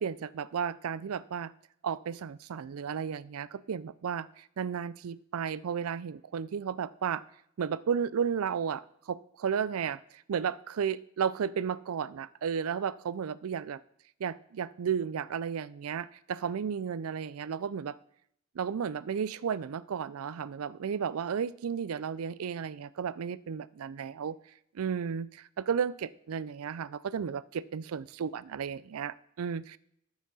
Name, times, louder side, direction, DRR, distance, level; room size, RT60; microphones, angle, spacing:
voice 1, 0.0-1.5 1.8-4.3 4.6-7.2 7.6-10.0 10.3-13.8 14.2-18.0 18.6-24.4 24.7-29.8, right 7 dB, 80° right, 18 dB, 0.4 m, -33 dB
13.5 x 5.6 x 4.1 m, 0.71 s
head